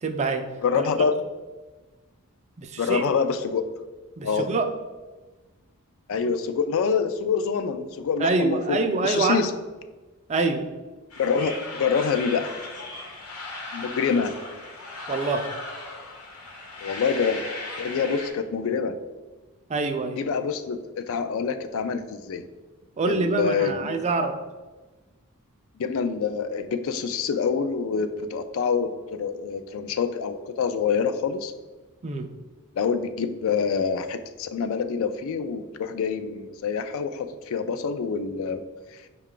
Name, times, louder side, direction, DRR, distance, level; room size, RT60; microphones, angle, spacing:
voice 1, 0.0-0.5 2.6-3.0 4.2-4.7 8.2-9.5 10.3-10.7 15.1-15.5 19.7-20.2 23.0-24.4 32.0-32.3, right 3 dB, 30° right, 6 dB, 0.3 m, -25 dB
voice 2, 0.6-1.2 2.8-3.6 4.2-4.5 6.1-9.5 11.2-12.5 13.7-14.3 16.8-17.5 17.8-19.0 20.2-22.4 23.1-24.0 25.8-31.5 32.8-38.6, left 6 dB, 65° left, 10 dB, 0.3 m, -26 dB
sound 1, 11.1-18.3, left 2 dB, 85° left, 1.0 m, -37 dB
5.4 x 2.3 x 3.7 m, 1.2 s
head